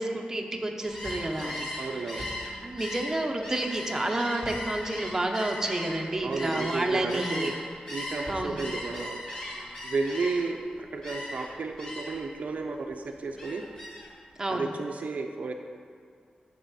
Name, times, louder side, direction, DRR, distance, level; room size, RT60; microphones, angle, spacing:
voice 1, 0.0-1.7 2.1-2.3 2.6-7.5 8.3-8.6 14.4-14.7, right 1 dB, 15° right, 1 dB, 0.7 m, -30 dB
Gull seagull, 0.8-7.6 7.9-10.6 11.0-11.5 11.8-12.3 12.6-14.1, left 1 dB, 30° left, 2.4 m, -38 dB
voice 2, 1.8-2.2 6.2-7.5 7.9-9.2 9.8-13.6 14.5-15.5, right 4 dB, 60° right, 3 dB, 0.6 m, -32 dB
11.5 x 6.8 x 4.1 m, 2.2 s
wide cardioid pair, 180°, 3 cm